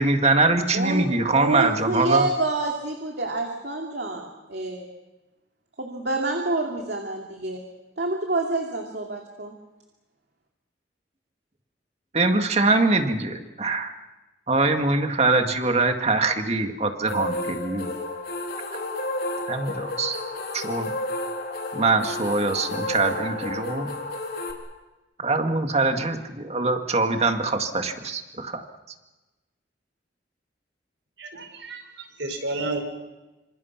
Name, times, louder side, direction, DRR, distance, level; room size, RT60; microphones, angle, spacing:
voice 1, 0.0-2.3 12.1-13.9 14.5-17.9 19.5-20.2 20.5-20.9 21.7-23.9 25.2-28.6, right 3 dB, 35° right, 5 dB, 2.0 m, -23 dB
voice 2, 0.7-4.9 5.8-7.6 8.0-9.5, right 2 dB, 60° right, 2 dB, 2.6 m, -27 dB
sound 1, 17.1-24.5, left 2 dB, 60° left, 3.9 m, -31 dB
voice 3, 31.2-32.8, right 2 dB, 90° right, 5 dB, 5.4 m, -31 dB
27.0 x 26.5 x 5.9 m, 1.1 s
head